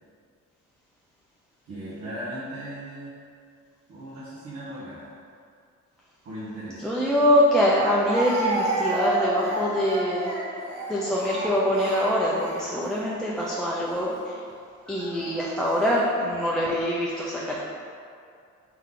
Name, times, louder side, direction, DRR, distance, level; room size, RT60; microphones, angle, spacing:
voice 1, 1.6-3.1 3.9-5.2 6.2-6.9, right 1 dB, 65° right, -12 dB, 1.2 m, -37 dB
voice 2, 6.8-10.3 10.9-14.4 14.9-17.6, equal, ahead, -6 dB, 0.4 m, -24 dB
Speech, 7.0-7.1 8.1-13.0 13.8-14.0 15.0-15.6, right 2 dB, 85° right, 1.1 m, -30 dB
3.6 x 3.3 x 3.6 m, 2.4 s
cardioid pair, 90°, 30 cm